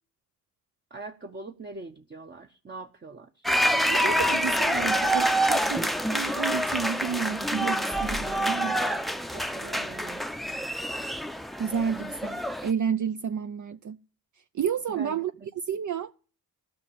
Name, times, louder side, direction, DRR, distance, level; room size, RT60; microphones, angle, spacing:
voice 1, 0.9-3.3 9.3-10.2 14.9-15.5, right 3 dB, 25° right, 0.9 m, -42 dB
sound 1, 3.4-12.7, equal, ahead, 0.6 m, -27 dB
voice 2, 3.9-8.8 11.6-14.0 14.5-15.3 15.7-16.1, right 7 dB, 45° right, 0.6 m, -31 dB
13.0 x 5.9 x 8.7 m
cardioid pair, 55°, 41 cm